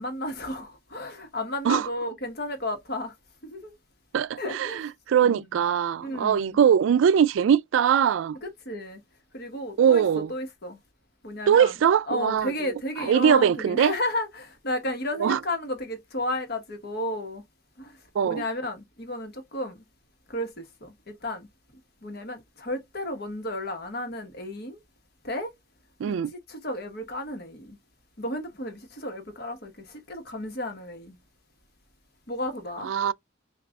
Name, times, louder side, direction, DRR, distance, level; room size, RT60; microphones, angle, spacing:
voice 1, 0.0-3.1 3.4-3.8 4.3-4.8 5.2-5.4 6.0-6.6 8.4-9.0 9.3-10.8 11.2-11.7 12.1-17.4 17.8-18.0 18.2-19.8 20.3-21.5 22.0-24.8 25.2-25.5 26.1-26.2 26.5-27.8 28.2-31.2 32.3-32.9, left 1 dB, 55° left, 1.2 m, -33 dB
voice 2, 4.1-8.4 9.8-10.3 11.5-12.7 13.0-13.9 15.2-15.4 18.1-18.4 26.0-26.3 32.8-33.1, right 8 dB, 80° right, 0.3 m, -22 dB
5.9 x 2.4 x 2.2 m
head